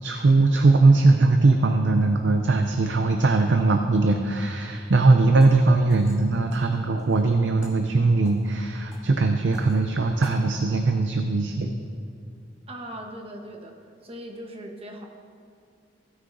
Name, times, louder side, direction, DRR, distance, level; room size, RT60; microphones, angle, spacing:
voice 1, 0.0-11.7, right 3 dB, 85° right, 5 dB, 0.5 m, -20 dB
sound 1, 5.3-10.5, left 1 dB, 5° right, 2.3 m, -49 dB
voice 2, 12.7-15.1, right 1 dB, 35° right, 2 dB, 1.1 m, -39 dB
16.0 x 9.5 x 2.6 m, 2.4 s
head